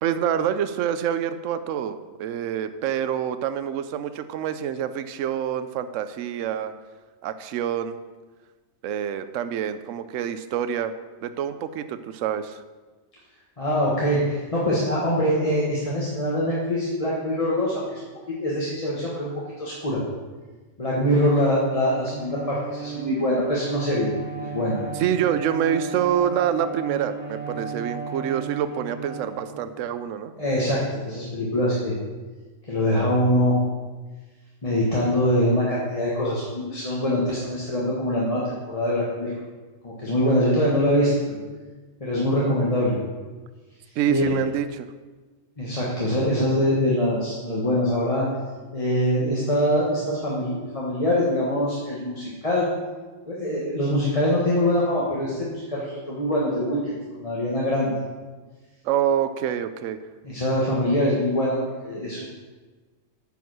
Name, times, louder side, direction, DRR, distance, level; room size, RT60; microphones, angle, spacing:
voice 1, 0.0-6.7 7.2-8.0 8.8-10.9 11.2-12.6 21.2-21.5 24.9-30.3 44.0-44.9 58.8-60.0, right 9 dB, 75° right, 11 dB, 0.9 m, -26 dB
voice 2, 13.6-18.0 18.4-20.0 20.8-24.1 24.4-24.8 30.4-31.9 32.7-33.6 34.6-39.3 39.8-41.4 42.0-43.0 44.1-44.3 45.6-48.3 48.7-52.7 53.3-57.9 60.2-61.6 61.8-62.2, equal, 25° left, -6 dB, 1.5 m, -23 dB
Bowed string instrument, 21.6-30.0, right 5 dB, 10° right, 0.8 m, -35 dB
9.3 x 5.4 x 6.2 m, 1.3 s
omnidirectional pair, 1.4 m